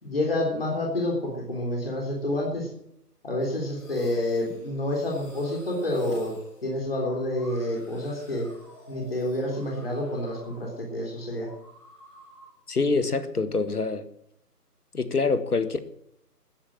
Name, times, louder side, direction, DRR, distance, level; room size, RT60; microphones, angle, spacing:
voice 1, 0.0-2.7 3.2-6.4 6.6-8.5 8.9-11.5, left 1 dB, 35° left, 3.5 m, -28 dB
sound 1, 3.4-10.8 11.1-12.6, left 1 dB, 20° left, 5.1 m, -49 dB
voice 2, 12.7-14.0 14.9-15.8, left 4 dB, 70° left, 1.7 m, -25 dB
14.5 x 10.0 x 7.4 m
figure-of-eight pair, 175°, 48 cm